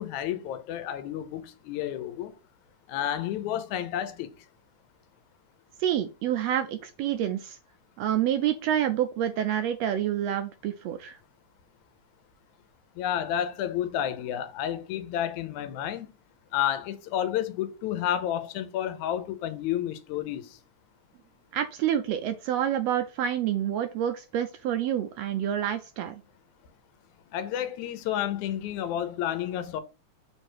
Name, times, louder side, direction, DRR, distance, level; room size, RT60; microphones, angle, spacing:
voice 1, 0.0-2.3 2.9-4.3 13.0-16.1 16.5-20.6 27.3-29.8, left 10 dB, 85° left, 2.1 m, -30 dB
voice 2, 5.8-7.6 8.0-11.2 21.5-26.2, right 10 dB, 80° right, 1.5 m, -28 dB
6.9 x 3.3 x 4.6 m
omnidirectional pair, 3.3 m